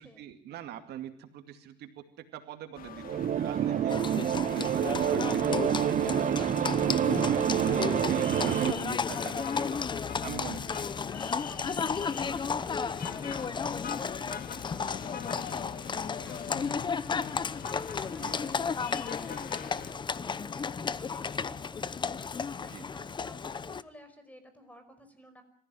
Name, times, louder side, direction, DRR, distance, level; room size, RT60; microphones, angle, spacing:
voice 1, 0.0-4.1 4.5-9.8 10.2-10.8 18.2-18.4 22.6-22.9, right 11 dB, 75° right, 7 dB, 2.3 m, -42 dB
sound 1, 2.7-19.9, left 9 dB, 60° left, 1.7 m, -44 dB
sound 2, 3.0-8.7, right 10 dB, 50° right, 0.9 m, -27 dB
Livestock farm animals working animals, 3.9-23.8, left 5 dB, 25° left, 0.9 m, -33 dB
voice 2, 11.1-17.7 17.9-25.4, equal, 10° left, 9 dB, 5.4 m, -55 dB
26.0 x 15.0 x 9.5 m, 0.66 s
cardioid pair, 110°, 17 cm